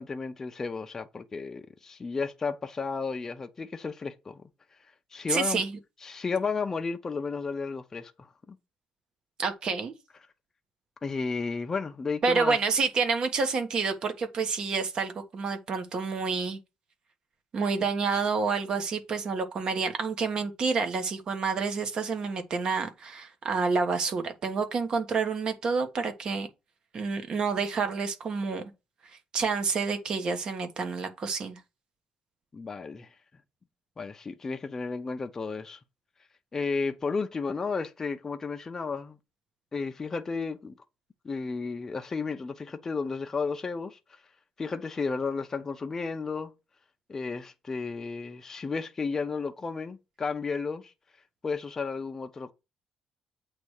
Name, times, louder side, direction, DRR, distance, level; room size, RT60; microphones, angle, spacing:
voice 1, 0.0-4.5 5.1-5.6 6.0-8.6 11.0-12.6 32.5-33.1 34.0-35.8 36.5-39.2 39.7-40.7 41.2-44.0 44.6-46.5 47.1-50.9 51.4-52.5, left 4 dB, 20° left, 0.6 m, -33 dB
voice 2, 5.3-5.7 9.4-9.9 12.2-16.6 17.5-26.5 26.9-28.7 29.3-31.6, right 4 dB, 40° right, 1.3 m, -28 dB
8.1 x 3.3 x 6.4 m
cardioid pair, 155°, 2 cm